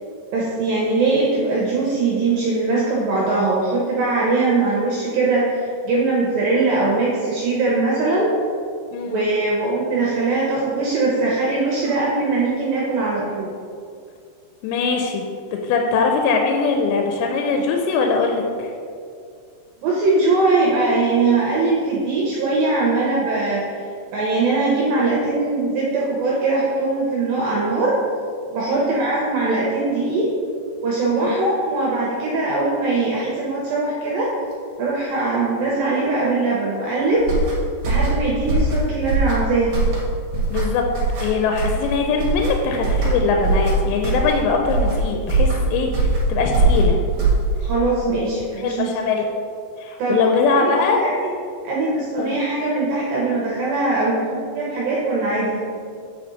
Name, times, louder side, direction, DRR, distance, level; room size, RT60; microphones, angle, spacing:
voice 1, 0.3-8.3 9.0-13.5 19.8-23.6 24.1-28.0 28.5-30.3 30.8-34.3 34.8-37.3 37.9-39.7 47.6-48.9 50.0-50.2 50.6-50.7 51.0-51.3 51.6-55.6, right 3 dB, 75° right, -4 dB, 2.2 m, -21 dB
voice 2, 14.6-18.7 28.7-28.9 31.2-31.3 40.5-40.9 41.2-47.0 48.6-49.3 49.8-51.0 52.2-52.4, left 4 dB, 85° left, 3 dB, 2.8 m, -21 dB
sound 1, 37.2-47.8, right 2 dB, 55° right, 1.7 m, -21 dB
7.7 x 5.1 x 4.0 m, 2.3 s
omnidirectional pair, 5.0 m